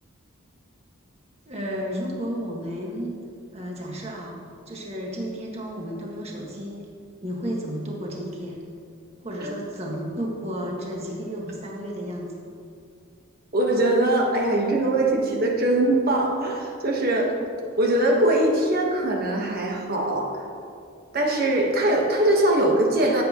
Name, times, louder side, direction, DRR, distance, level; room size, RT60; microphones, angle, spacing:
voice 1, 1.4-3.2 3.5-4.4 4.7-6.8 7.2-8.6 9.2-12.3, equal, 30° right, -2 dB, 1.7 m, -32 dB
voice 2, 13.5-17.4 17.8-20.3 21.1-23.2, right 1 dB, 45° right, 0 dB, 1.2 m, -22 dB
15.0 x 8.2 x 3.0 m, 2.3 s
head